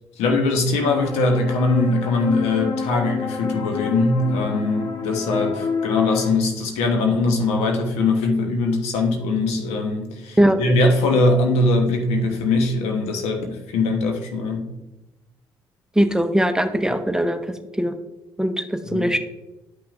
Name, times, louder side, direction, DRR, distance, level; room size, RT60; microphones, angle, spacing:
voice 1, 0.2-14.7 18.9-19.1, left 2 dB, 80° left, 4 dB, 1.1 m, -21 dB
sound 1, 0.8-6.3, left 5 dB, 40° left, 1.1 m, -28 dB
voice 2, 16.0-17.4 17.8-17.9 18.4-19.2, equal, 5° right, 7 dB, 0.7 m, -20 dB
10.0 x 5.8 x 2.5 m, 0.98 s
hypercardioid pair, 55°, 10 cm